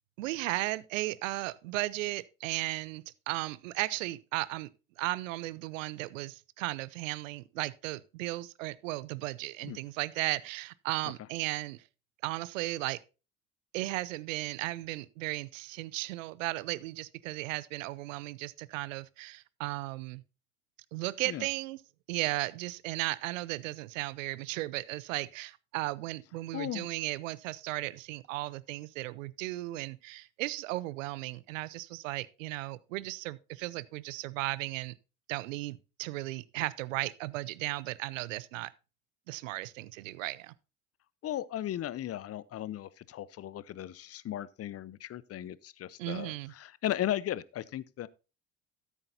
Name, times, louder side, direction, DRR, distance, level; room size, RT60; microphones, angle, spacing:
voice 1, 0.2-4.7 5.0-11.8 12.2-13.0 13.7-20.2 20.9-21.8 22.1-34.9 35.3-38.7 39.3-40.5 46.0-46.5, right 18 dB, 75° right, 0.7 m, -35 dB
voice 2, 26.5-26.9 41.2-48.1, left 12 dB, 40° left, 0.7 m, -36 dB
13.5 x 8.2 x 2.6 m
hypercardioid pair, 60°, 39 cm